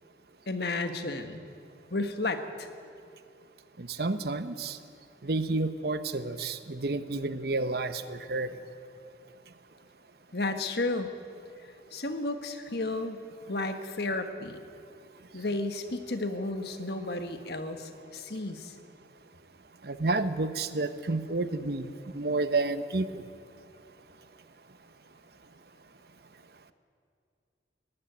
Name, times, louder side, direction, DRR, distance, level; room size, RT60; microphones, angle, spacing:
voice 1, 0.5-1.4 1.9-2.7 10.3-11.1 11.9-13.2 13.5-14.6 15.3-18.7, left 2 dB, 60° left, 7 dB, 1.5 m, -32 dB
voice 2, 3.8-4.8 5.2-8.6 15.3-15.4 19.8-23.3, right 3 dB, 60° right, 11 dB, 1.0 m, -30 dB
20.0 x 14.5 x 9.5 m, 2.5 s
head